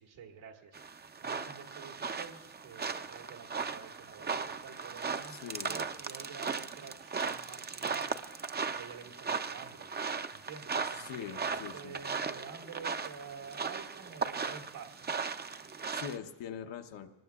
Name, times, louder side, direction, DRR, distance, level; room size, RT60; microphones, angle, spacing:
voice 1, 0.0-0.8 1.2-9.9 10.3-15.1, right 6 dB, 85° right, 1 dB, 2.2 m, -49 dB
sound 1, 0.7-16.2, right 5 dB, 25° right, 0.5 m, -37 dB
voice 2, 5.3-5.8 11.0-12.0 15.9-17.1, left 8 dB, 75° left, 5 dB, 1.0 m, -43 dB
24.0 x 20.0 x 2.4 m, 1.3 s
cardioid pair, 85°, 45 cm